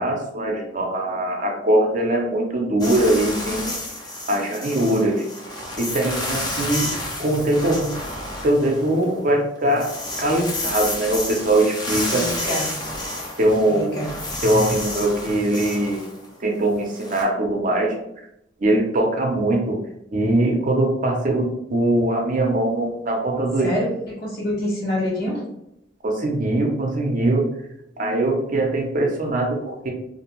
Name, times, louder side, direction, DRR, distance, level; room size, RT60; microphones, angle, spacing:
voice 1, 0.0-3.8 4.3-5.2 5.8-6.9 7.2-8.0 8.4-12.3 13.4-13.9 14.4-16.0 16.4-17.9 18.6-19.8 20.1-23.7 26.0-27.5 28.0-29.9, right 1 dB, 45° right, 1 dB, 0.5 m, -21 dB
sound 1, 2.8-9.2 9.5-17.2, left 1 dB, 20° left, 0.5 m, -30 dB
voice 2, 12.1-12.8 13.7-14.2 23.6-25.4, left 1 dB, 55° left, -5 dB, 1.1 m, -26 dB
2.5 x 2.2 x 2.9 m, 0.79 s
head